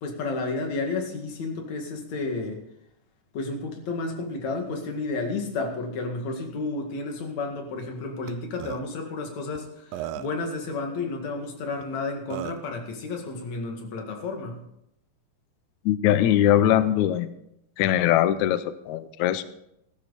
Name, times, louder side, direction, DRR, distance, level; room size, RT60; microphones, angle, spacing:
voice 1, 0.0-2.6 3.3-14.6, left 3 dB, 55° left, 2 dB, 3.1 m, -31 dB
Burping eructation, 8.3-8.4 8.6-8.8 9.6-9.7 9.9-10.4 11.8-11.9 12.3-12.7, right 12 dB, 80° right, 2.3 m, -34 dB
voice 2, 15.9-17.3 17.8-19.4, left 11 dB, 90° left, 12 dB, 1.6 m, -21 dB
15.5 x 12.5 x 4.1 m, 0.78 s
omnidirectional pair, 4.2 m